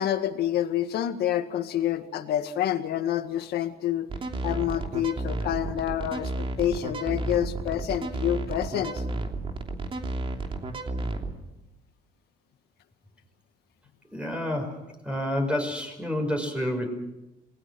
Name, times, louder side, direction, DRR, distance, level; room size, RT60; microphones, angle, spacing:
voice 1, 0.0-4.1 4.4-6.3 6.6-9.0, left 11 dB, 70° left, 9 dB, 1.9 m, -28 dB
sound 1, 4.1-11.3, right 2 dB, 30° right, 3.0 m, -32 dB
voice 2, 14.1-16.9, left 1 dB, 5° right, 3 dB, 5.7 m, -29 dB
27.5 x 20.5 x 6.2 m, 0.94 s
cardioid pair, 110°, 17 cm